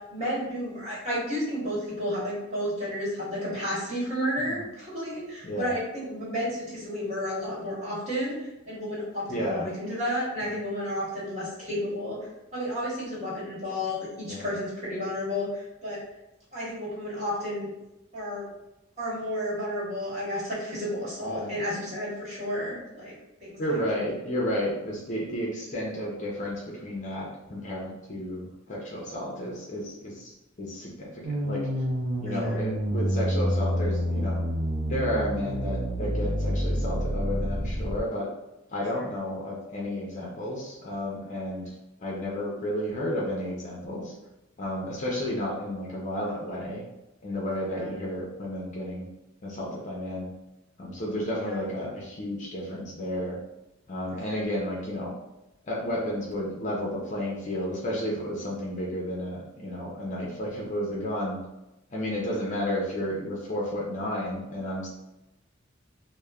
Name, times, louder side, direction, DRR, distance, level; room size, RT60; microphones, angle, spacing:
voice 1, 0.1-16.0 16.5-17.7 18.1-18.5 19.0-23.1 23.4-23.6 32.4-32.6 39.0-39.1 47.7-47.9 51.5-51.6 54.3-54.5, equal, 35° right, -8 dB, 1.3 m, -32 dB
voice 2, 9.3-9.7 10.4-10.5 14.3-14.6 21.2-21.5 23.6-31.8 32.2-34.4 34.9-38.3 38.7-44.1 44.6-46.8 47.2-49.1 49.4-50.3 50.8-53.4 53.9-55.1 55.6-61.4 61.9-64.9, left 1 dB, 40° left, -3 dB, 0.5 m, -32 dB
sound 1, 31.2-38.0, equal, 85° right, 0.5 m, -28 dB
3.0 x 2.1 x 2.3 m, 0.94 s
head